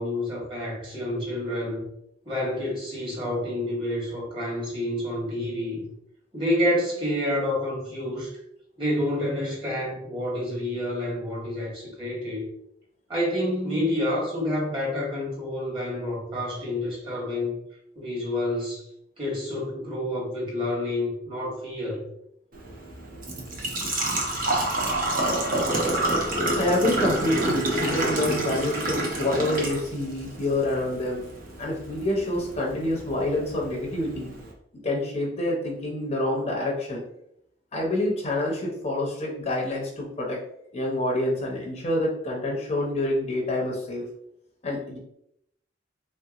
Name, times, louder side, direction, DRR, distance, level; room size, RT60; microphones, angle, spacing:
voice 1, 0.0-1.9 2.2-5.8 6.3-8.3 8.8-12.4 13.1-17.6 17.9-18.8 19.2-22.0, left 1 dB, 25° right, -5 dB, 1.3 m, -28 dB
Engine / Trickle dribble / Fill (with liquid), 22.5-34.5, right 1 dB, 45° right, 0.6 m, -28 dB
voice 2, 26.6-31.2 31.6-34.3 34.8-37.0 37.7-40.4 40.7-44.0 44.6-45.0, left 1 dB, 35° left, -1 dB, 0.6 m, -27 dB
3.3 x 2.8 x 2.4 m, 0.76 s
head